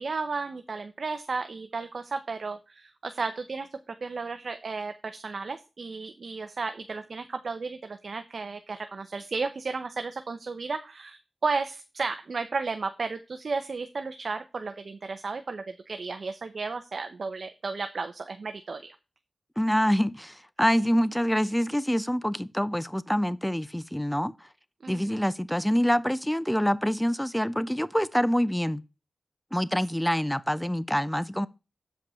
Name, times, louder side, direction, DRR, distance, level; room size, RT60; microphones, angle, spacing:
voice 1, 0.0-19.0 24.8-25.2, right 4 dB, 60° right, 0.7 m, -34 dB
voice 2, 19.6-24.3 24.9-28.8 29.5-31.5, equal, 5° left, 0.5 m, -26 dB
7.7 x 5.2 x 5.5 m
wide cardioid pair, 95°, 0 cm